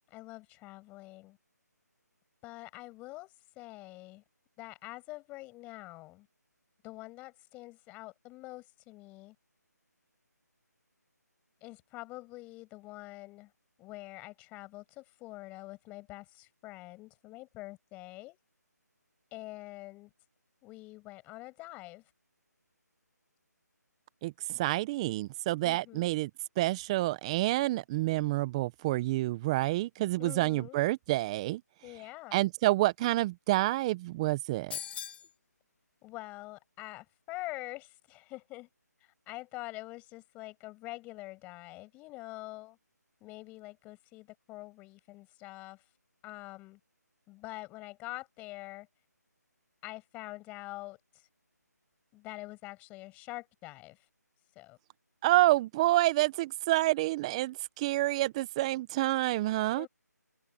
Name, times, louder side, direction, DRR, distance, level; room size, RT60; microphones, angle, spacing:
voice 1, 0.0-1.4 2.4-4.2 4.6-6.3 6.8-9.4 11.6-13.5 13.8-18.4 19.3-20.1 20.6-22.0 25.6-26.1 30.2-30.8 31.8-32.4 36.0-38.7 39.0-42.8 43.2-45.8 46.2-46.8 47.3-48.9 49.8-51.3 52.1-54.0 54.6-54.8 59.7-59.9, left 20 dB, 15° left, 6.9 m, -45 dB
voice 2, 24.2-26.3 26.6-31.6 32.3-34.8 55.2-59.9, right 17 dB, 20° right, 1.0 m, -28 dB
sound 1, 34.7-35.3, left 10 dB, 35° left, 1.7 m, -39 dB
figure-of-eight pair, 155°, 10 cm